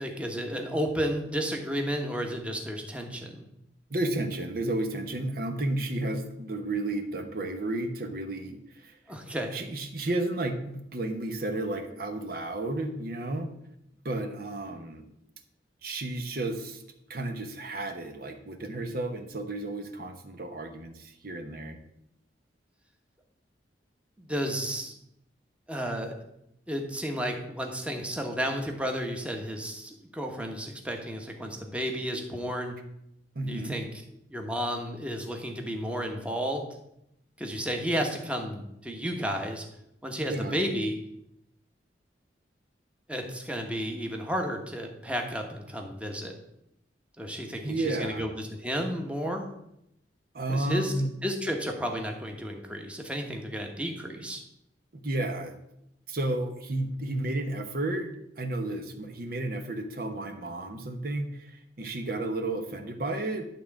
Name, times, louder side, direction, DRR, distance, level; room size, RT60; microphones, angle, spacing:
voice 1, 0.0-3.5 9.1-9.6 24.2-24.9 25.7-26.1 26.7-32.8 33.5-33.9 34.3-36.8 37.4-39.6 40.0-41.0 43.1-46.3 47.2-49.5 50.5-50.9 51.2-54.4, equal, 5° right, 2 dB, 1.2 m, -32 dB
voice 2, 3.9-8.9 9.5-13.5 14.0-15.1 15.8-16.8 17.1-21.8 33.3-33.8 40.3-40.6 47.6-48.3 50.3-51.2 54.9-55.6 56.1-63.5, right 2 dB, 55° right, 5 dB, 1.1 m, -32 dB
11.5 x 3.8 x 7.2 m, 0.80 s
head